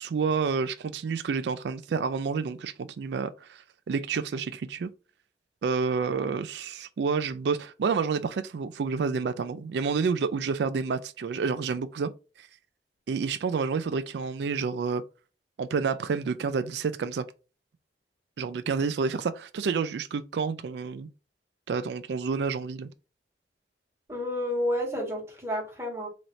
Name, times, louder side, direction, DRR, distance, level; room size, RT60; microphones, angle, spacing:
voice 1, 0.0-4.9 5.6-12.1 12.4-12.5 13.1-15.0 15.6-17.2 18.4-21.1 21.7-22.9, right 5 dB, 70° right, 0.4 m, -29 dB
voice 2, 24.1-26.1, left 1 dB, 15° right, 1.8 m, -30 dB
4.1 x 3.1 x 2.6 m
head